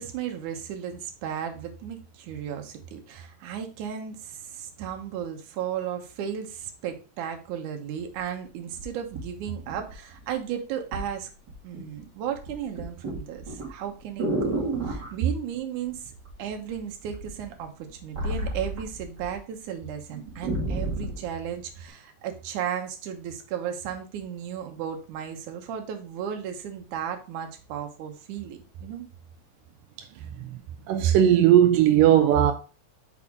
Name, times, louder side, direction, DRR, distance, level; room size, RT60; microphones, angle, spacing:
voice 1, 0.0-11.3 11.6-16.1 16.4-29.1, right 9 dB, 70° right, 2.0 m, -35 dB
sound 1, 8.1-8.2 8.8-10.3 10.9-11.1 11.5-12.0 12.3-15.1 16.2-16.8 17.1-19.4 19.7-19.8 20.1-21.2 21.9-22.0, right 2 dB, 35° right, 2.2 m, -31 dB
voice 2, 30.9-32.5, right 10 dB, 85° right, 1.9 m, -18 dB
6.2 x 4.9 x 3.6 m
omnidirectional pair, 4.6 m